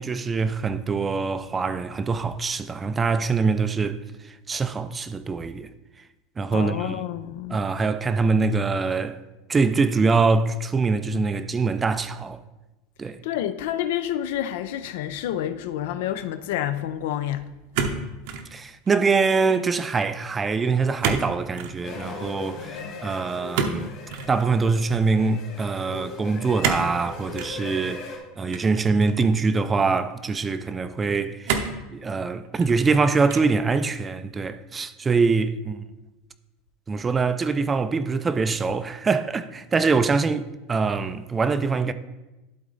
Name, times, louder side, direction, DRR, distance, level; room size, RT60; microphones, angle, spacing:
voice 1, 0.0-4.0 4.5-5.7 6.4-7.0 7.5-9.2 9.5-12.4 13.0-13.2 18.5-23.9 24.3-31.6 31.9-35.8 36.9-41.9, right 4 dB, 15° right, 0.4 m, -24 dB
voice 2, 6.5-7.6 13.2-17.5, left 11 dB, 75° left, 0.5 m, -28 dB
sound 1, 17.7-18.5 18.9-19.3 21.0-21.3 21.5-21.8 23.5-24.3 26.6-26.9 27.4-27.6 28.5-29.3 30.0-30.1 31.5-31.8 32.4-32.9 33.3-33.6, right 6 dB, 65° right, 0.8 m, -28 dB
sound 2, 21.8-28.2, left 4 dB, 45° left, 2.2 m, -39 dB
11.5 x 3.9 x 3.9 m
supercardioid pair, 140°, 0 cm